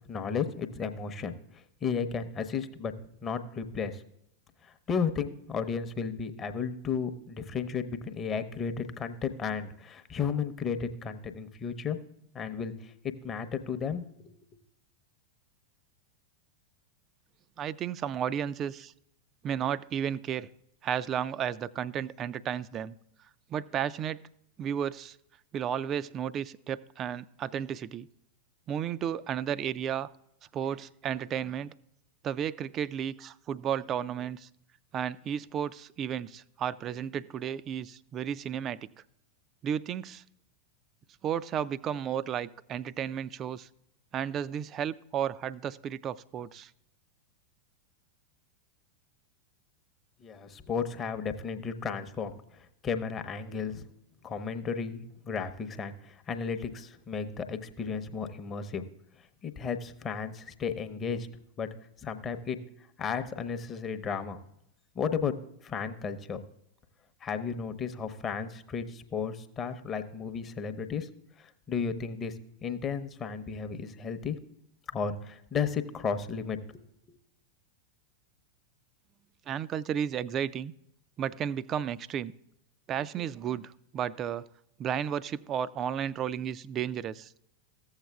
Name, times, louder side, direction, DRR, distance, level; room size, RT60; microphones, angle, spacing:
voice 1, 0.1-2.9 3.2-4.0 4.9-12.0 12.3-14.3 50.2-53.8 54.2-58.9 59.4-61.3 61.6-61.7 62.0-62.6 63.0-64.4 64.9-65.3 65.6-66.4 67.2-71.1 71.4-72.3 72.6-74.4 74.9-77.2, left 6 dB, 25° left, 9 dB, 0.8 m, -34 dB
voice 2, 17.6-18.9 19.4-20.5 20.8-22.9 23.5-24.2 24.6-25.2 25.5-28.1 28.7-30.1 30.5-31.7 32.2-34.5 34.9-38.9 39.6-40.2 41.2-43.7 44.1-46.7 79.5-80.7 81.2-82.3 82.9-84.5 84.8-87.3, right 9 dB, 30° right, 18 dB, 0.3 m, -33 dB
15.0 x 8.0 x 2.3 m, 0.77 s
figure-of-eight pair, 90°, 0 cm